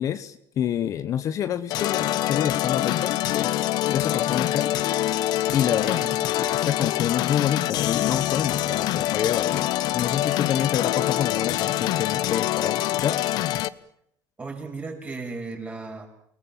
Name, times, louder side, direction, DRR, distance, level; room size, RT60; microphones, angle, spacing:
voice 1, 0.0-4.7 5.5-6.0 6.4-13.2, left 9 dB, 45° left, 11 dB, 1.2 m, -27 dB
sound 1, 1.7-13.7, left 14 dB, 65° left, 0.9 m, -25 dB
voice 2, 5.8-6.2 14.4-16.1, right 3 dB, 20° right, 2 dB, 6.5 m, -35 dB
30.0 x 19.5 x 7.5 m, 0.75 s
cardioid pair, 140°, 8 cm